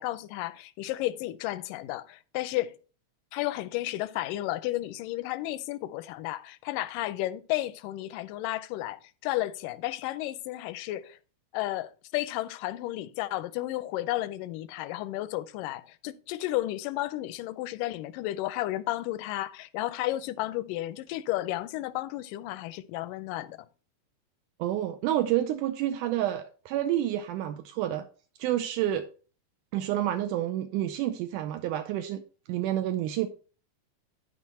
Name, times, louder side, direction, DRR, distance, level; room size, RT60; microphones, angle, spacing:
voice 1, 0.0-2.8 3.3-11.2 11.5-23.7, left 16 dB, 85° left, 2.2 m, -33 dB
voice 2, 24.6-28.1 28.4-29.1 29.7-32.2 32.5-33.3, right 12 dB, 80° right, 2.1 m, -29 dB
12.0 x 4.8 x 4.2 m
omnidirectional pair, 3.7 m